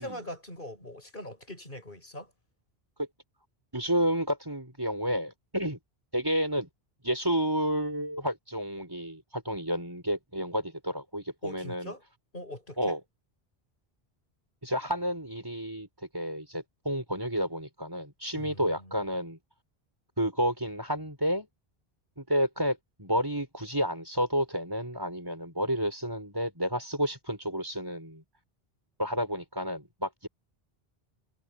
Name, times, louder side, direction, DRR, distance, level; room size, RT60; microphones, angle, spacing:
voice 1, 0.0-2.3 11.4-12.0 12.3-13.0 18.3-19.0, left 1 dB, 55° left, 7.4 m, -42 dB
voice 2, 3.7-5.8 6.1-6.7 7.0-11.9 12.8-13.0 14.6-15.9 16.1-19.4 20.2-21.5 22.2-28.2 29.0-30.3, equal, 20° right, 5.6 m, -30 dB
omnidirectional pair, 1.0 m